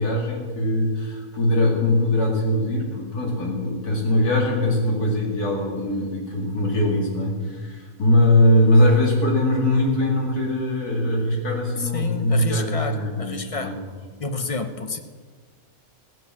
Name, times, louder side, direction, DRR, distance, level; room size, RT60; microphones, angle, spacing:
voice 1, 0.0-13.8, left 1 dB, 90° left, -1 dB, 3.0 m, -21 dB
voice 2, 11.8-13.8 14.2-15.0, left 3 dB, 35° left, 7 dB, 0.5 m, -30 dB
16.5 x 7.8 x 6.2 m, 1.5 s
omnidirectional pair, 1.6 m